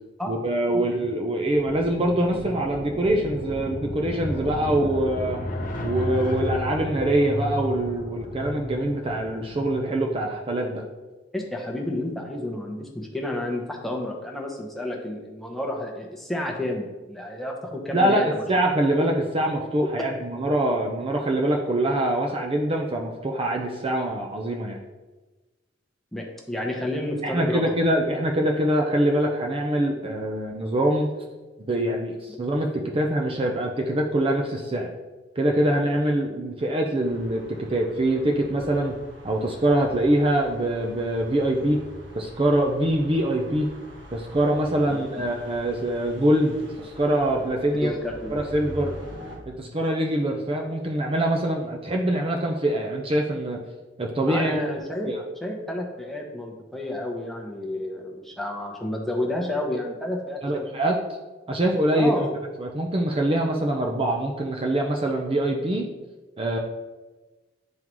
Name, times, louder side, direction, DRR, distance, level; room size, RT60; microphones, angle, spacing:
voice 1, 0.3-5.4 5.8-10.8 17.9-24.8 27.2-31.1 31.7-34.9 35.4-38.9 39.2-41.8 42.1-43.7 44.1-47.9 48.3-48.9 49.5-53.6 54.0-54.5 55.1-55.2 60.4-61.0 61.5-62.3 62.6-65.9 66.4-66.6, right 1 dB, 30° right, 1 dB, 0.5 m, -24 dB
sound 1, 1.5-10.3, equal, 45° left, 0.8 m, -33 dB
voice 2, 11.3-18.4 26.1-27.8 44.9-45.0 47.8-48.4 54.3-55.1 55.4-60.7 61.9-62.3, left 1 dB, ahead, -1 dB, 0.8 m, -30 dB
sound 2, 37.0-49.4, equal, 75° right, 1.4 m, -44 dB
9.5 x 3.7 x 3.0 m, 1.2 s
head